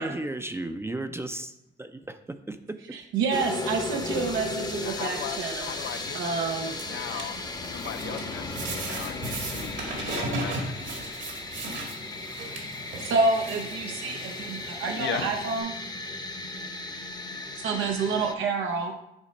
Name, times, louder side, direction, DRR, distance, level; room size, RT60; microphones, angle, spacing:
voice 1, 0.0-2.8, right 1 dB, 10° right, 8 dB, 0.4 m, -35 dB
voice 2, 3.1-5.7 6.1-6.7 7.1-7.2 13.0-15.7 17.6-18.9, right 4 dB, 90° right, 2 dB, 0.8 m, -28 dB
sound 1, 3.3-18.3, left 3 dB, 20° left, 0.7 m, -36 dB
voice 3, 4.8-7.4 7.6-11.0 15.0-15.4, left 8 dB, 70° left, 9 dB, 0.7 m, -38 dB
sound 2, 5.8-15.6, right 2 dB, 70° right, 1.9 m, -37 dB
7.2 x 4.0 x 5.2 m, 0.84 s
cardioid pair, 90°, 20 cm